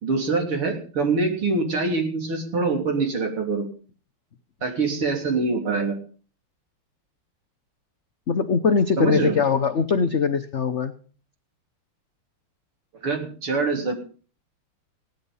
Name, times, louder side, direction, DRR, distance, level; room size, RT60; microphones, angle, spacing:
voice 1, 0.0-3.6 4.6-5.9 9.0-9.3 13.0-13.9, right 3 dB, 75° right, 2 dB, 4.2 m, -24 dB
voice 2, 8.3-10.9, left 5 dB, 80° left, 8 dB, 0.6 m, -21 dB
17.5 x 10.5 x 5.5 m, 0.40 s
omnidirectional pair, 2.4 m